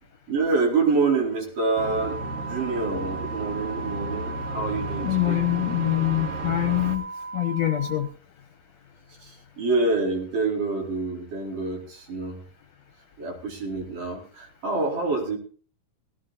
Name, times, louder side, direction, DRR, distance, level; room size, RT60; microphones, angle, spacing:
voice 1, 0.3-5.4 9.2-12.4 13.2-15.4, right 3 dB, 90° right, -1 dB, 6.2 m, -27 dB
sound 1, 1.8-7.0, right 2 dB, 50° right, 2.8 m, -34 dB
sound 2, 1.8-8.0, right 3 dB, 65° right, 4.7 m, -37 dB
voice 2, 5.0-7.1 7.3-8.1, left 16 dB, 65° left, 7 dB, 2.2 m, -24 dB
19.0 x 16.5 x 2.6 m, 0.41 s
omnidirectional pair, 3.6 m